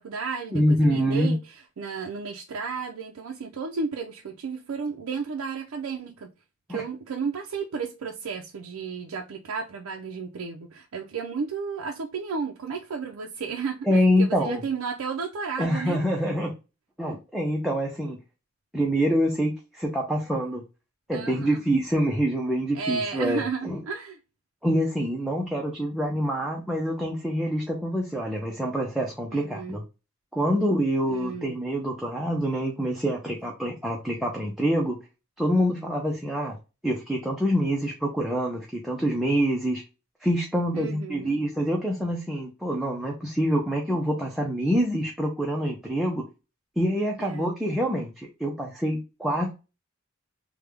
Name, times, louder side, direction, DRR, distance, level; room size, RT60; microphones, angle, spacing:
voice 1, 0.0-6.3 6.7-16.0 21.1-21.6 22.7-24.2 29.3-29.8 31.0-31.5 40.7-41.4 47.2-47.5, right 5 dB, 90° right, 0.5 m, -33 dB
voice 2, 0.5-1.3 6.7-6.8 13.9-14.6 15.6-16.5 17.0-18.2 18.7-20.6 21.1-23.8 24.6-29.8 30.3-35.0 35.4-36.6 36.8-39.8 40.2-46.3 46.8-49.5, equal, ahead, 0.5 m, -26 dB
3.3 x 2.2 x 3.3 m
head